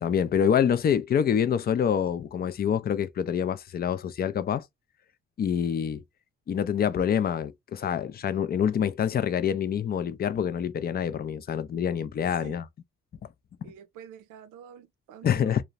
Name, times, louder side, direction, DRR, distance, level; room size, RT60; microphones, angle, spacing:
voice 1, 0.0-4.6 5.4-6.0 6.5-12.6 15.2-15.6, left 8 dB, 30° left, 0.4 m, -26 dB
voice 2, 13.6-15.6, right 9 dB, 90° right, 0.5 m, -47 dB
2.4 x 2.1 x 2.7 m
cardioid pair, 90°, 30 cm